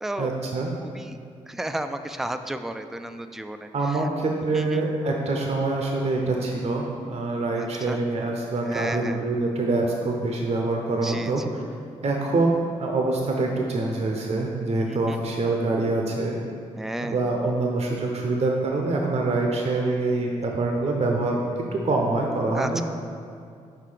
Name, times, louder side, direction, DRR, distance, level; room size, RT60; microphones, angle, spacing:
voice 1, 0.2-0.7 3.7-11.6 12.0-16.4 17.0-21.4 21.7-22.8, right 2 dB, 50° right, 0 dB, 0.7 m, -25 dB
voice 2, 0.8-1.2 1.5-4.0 4.5-4.8 7.5-8.0 8.6-9.2 11.0-11.5 14.9-15.2 16.8-17.2 22.5-22.8, right 1 dB, 5° right, 8 dB, 0.3 m, -33 dB
5.7 x 3.7 x 5.0 m, 2.4 s
cardioid pair, 60°, 14 cm